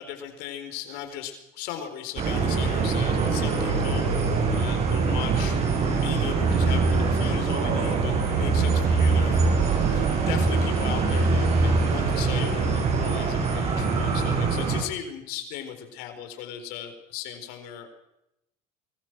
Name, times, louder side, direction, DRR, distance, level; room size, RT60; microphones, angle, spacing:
voice 1, 0.0-5.6 6.0-17.9, left 9 dB, 85° left, 7 dB, 4.4 m, -37 dB
sound 1, 2.2-14.8, right 4 dB, 40° right, 7.0 m, -23 dB
24.5 x 21.0 x 6.3 m, 0.85 s
cardioid pair, 135°, 16 cm